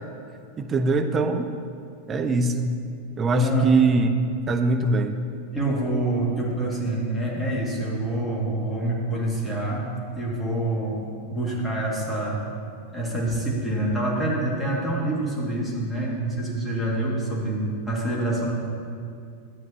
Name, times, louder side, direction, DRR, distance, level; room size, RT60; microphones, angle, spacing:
voice 1, 0.6-1.5 2.1-2.7 3.2-4.1 4.5-5.2, right 3 dB, 25° right, 6 dB, 0.7 m, -22 dB
voice 2, 3.3-3.7 5.5-12.5 12.9-18.5, right 1 dB, 10° left, -5 dB, 2.2 m, -26 dB
12.5 x 9.0 x 2.9 m, 2.4 s
figure-of-eight pair, 90°, 0 cm